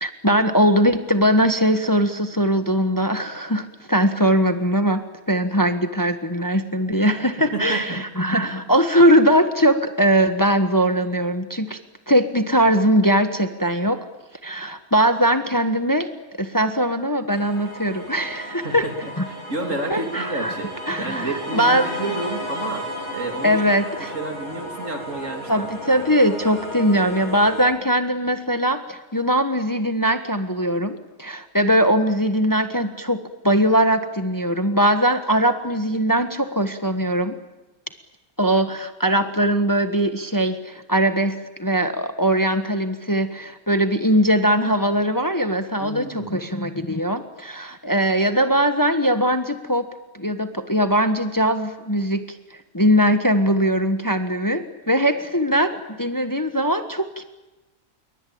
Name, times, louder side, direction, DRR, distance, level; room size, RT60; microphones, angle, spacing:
voice 1, 0.0-11.8 12.1-14.0 14.4-16.1 16.4-18.9 19.2-19.3 19.9-20.6 20.9-22.0 23.4-24.1 25.5-37.4 38.4-49.9 50.1-57.2, equal, 15° left, 8 dB, 1.4 m, -20 dB
voice 2, 7.5-8.0 18.6-22.9 23.1-23.6 24.1-25.7 26.0-26.1 45.8-46.3, right 2 dB, 60° right, 4 dB, 3.5 m, -30 dB
sound 1, 17.3-27.7, equal, 35° left, 6.9 m, -33 dB
28.5 x 23.0 x 8.7 m, 1.0 s
omnidirectional pair, 1.5 m